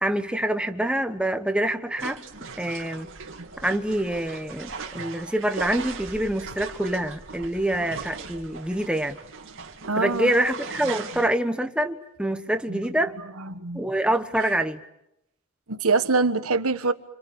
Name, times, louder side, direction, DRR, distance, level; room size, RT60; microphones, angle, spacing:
voice 1, 0.0-2.2 2.6-3.1 3.6-9.2 10.0-13.2 13.7-14.8, right 1 dB, 5° right, 1.3 m, -26 dB
sound 1, 2.0-11.3, right 5 dB, 60° right, 2.5 m, -39 dB
voice 2, 9.9-10.3 12.7-12.9 13.4-13.8 15.7-16.9, right 3 dB, 80° right, 1.5 m, -24 dB
29.0 x 26.5 x 7.3 m
head